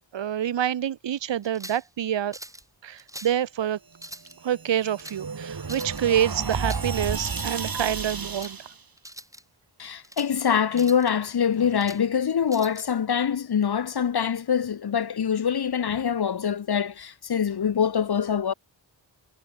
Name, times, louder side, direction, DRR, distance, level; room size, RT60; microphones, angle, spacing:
voice 1, 0.0-2.4 2.8-3.8 4.4-8.6, right 10 dB, 65° right, 0.9 m, -27 dB
sound 1, 1.4-1.9 2.3-2.7 3.0-3.4 3.9-4.4 4.8-5.2 5.6-6.0 6.5-6.9 7.2-7.6 8.1-8.6 9.0-9.4 9.8-10.3 10.7-11.1 11.5-12.0 12.5-12.8, right 1 dB, 5° right, 2.9 m, -43 dB
sound 2, 4.3-8.8, right 5 dB, 45° right, 3.6 m, -32 dB
voice 2, 9.8-18.5, left 7 dB, 55° left, 1.0 m, -24 dB
wide cardioid pair, 85°, 46 cm